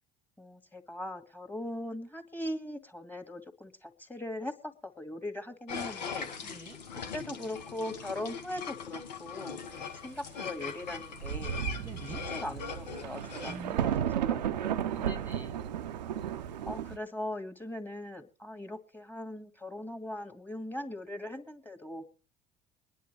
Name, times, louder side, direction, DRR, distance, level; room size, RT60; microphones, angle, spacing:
voice 1, 0.4-6.3 7.1-11.8 12.3-15.0 16.7-22.1, left 1 dB, 10° left, 7 dB, 1.7 m, -40 dB
sound 1, 5.7-13.6, left 6 dB, 85° left, 1.1 m, -41 dB
voice 2, 6.4-6.9 11.8-12.2 13.5-14.2 14.8-15.6, right 2 dB, 10° right, 4 dB, 1.1 m, -46 dB
Thunder, 10.8-10.9 11.2-17.0, right 10 dB, 85° right, 0.6 m, -33 dB
23.0 x 10.5 x 3.2 m, 0.35 s
hypercardioid pair, 60°, 21 cm